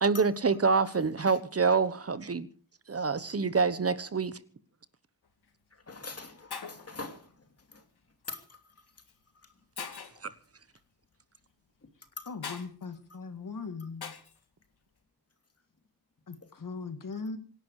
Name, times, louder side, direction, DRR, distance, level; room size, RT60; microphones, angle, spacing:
voice 1, 0.0-2.5 2.9-4.4, right 4 dB, 40° right, 1.2 m, -26 dB
voice 2, 0.9-1.4 5.7-7.3 7.7-7.8 8.3-8.6 12.2-12.3, left 3 dB, 40° left, 2.8 m, -43 dB
Shatter, 5.3-5.5 6.2-6.3 6.5-7.0 8.2-8.5 9.1-9.2 9.8-10.3 12.4-12.7 14.0-14.4, left 6 dB, 80° left, 2.4 m, -41 dB
voice 3, 12.3-14.1 16.3-17.4, left 4 dB, 55° left, 2.4 m, -39 dB
26.5 x 11.0 x 4.9 m
wide cardioid pair, 135°, 38 cm